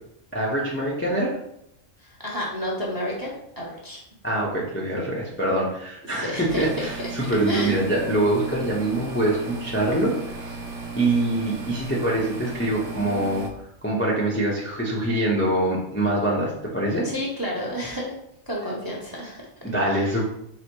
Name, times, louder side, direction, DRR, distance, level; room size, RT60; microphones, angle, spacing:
voice 1, 0.3-1.3 4.2-10.1 10.4-10.6 10.9-13.5 13.8-17.1 19.6-20.3, right 1 dB, 10° left, -5 dB, 0.6 m, -24 dB
voice 2, 2.0-4.0 6.1-6.7 7.5-7.8 17.0-18.1 18.5-19.4 19.8-20.1, equal, 20° right, -3 dB, 0.7 m, -30 dB
sound 1, 6.5-13.5, right 3 dB, 70° right, 1.0 m, -36 dB
4.9 x 2.1 x 4.4 m, 0.76 s
omnidirectional pair, 1.4 m